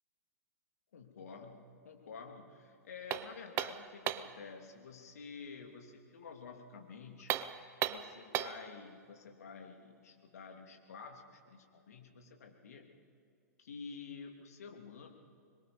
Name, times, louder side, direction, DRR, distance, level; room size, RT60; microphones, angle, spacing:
voice 1, 0.9-7.3 7.9-12.9 13.6-15.1, left 5 dB, 65° left, 2 dB, 3.0 m, -50 dB
sound 1, 3.1-4.4 7.2-8.7, right 11 dB, 25° right, 0.7 m, -36 dB
25.5 x 22.0 x 5.4 m, 2.3 s
figure-of-eight pair, 110°, 9 cm